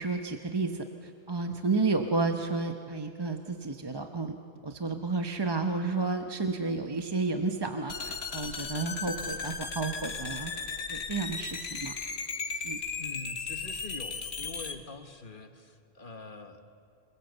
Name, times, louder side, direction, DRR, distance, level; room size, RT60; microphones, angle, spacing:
voice 1, 0.0-4.4 4.6-10.5 10.9-11.9 12.6-12.8, right 3 dB, 25° right, 5 dB, 0.9 m, -31 dB
sound 1, 7.9-14.8, left 4 dB, 75° left, 1.6 m, -36 dB
voice 2, 13.0-16.6, left 4 dB, 55° left, 6 dB, 1.3 m, -45 dB
27.0 x 20.5 x 8.0 m, 2.4 s
omnidirectional pair, 1.1 m